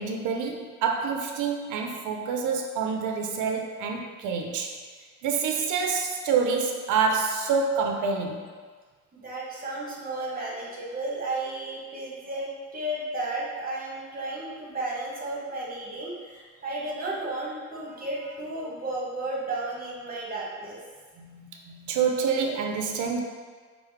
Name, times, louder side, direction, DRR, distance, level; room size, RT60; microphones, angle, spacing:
voice 1, 0.0-4.8 5.2-8.5 21.2-23.2, right 5 dB, 80° right, 3 dB, 0.5 m, -27 dB
voice 2, 9.2-20.8, right 2 dB, 30° right, -4 dB, 1.1 m, -33 dB
4.4 x 2.0 x 3.5 m, 1.5 s
cardioid pair, 90°, 30 cm